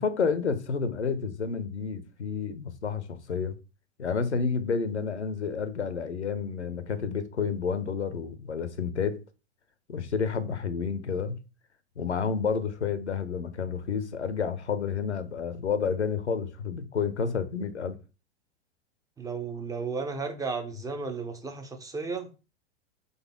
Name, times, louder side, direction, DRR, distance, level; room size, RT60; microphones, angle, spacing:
voice 1, 0.0-3.6 4.0-9.2 9.9-11.4 12.0-18.0, left 6 dB, 85° left, 0.7 m, -30 dB
voice 2, 19.2-22.3, right 4 dB, 10° right, 0.4 m, -34 dB
4.1 x 3.3 x 3.5 m
figure-of-eight pair, 95°, 33 cm